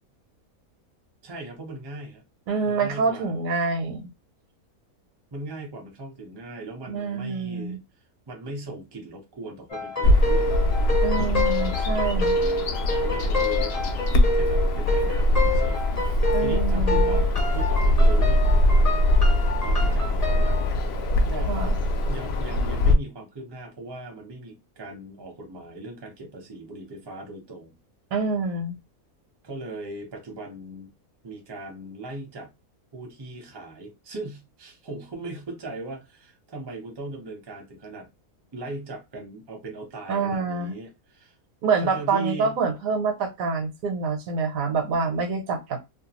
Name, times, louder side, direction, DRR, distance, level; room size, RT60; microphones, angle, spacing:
voice 1, 1.2-2.2 2.6-3.4 5.3-7.8 8.3-10.6 12.3-18.6 19.6-20.7 21.3-21.6 22.1-27.7 29.4-30.9 31.2-32.5 32.9-38.1 38.5-41.3 41.8-42.6, right 2 dB, 25° right, 0.5 m, -39 dB
voice 2, 2.5-4.1 6.9-7.8 11.0-12.4 16.3-17.2 21.5-21.8 28.1-28.8 40.1-40.7 41.6-45.8, right 4 dB, 70° right, 1.0 m, -26 dB
sound 1, 9.7-20.7, left 2 dB, 35° left, 0.7 m, -28 dB
Bird vocalization bird call bird song, 10.0-22.9, left 1 dB, 70° left, 0.6 m, -22 dB
2.6 x 2.2 x 2.9 m
omnidirectional pair, 1.6 m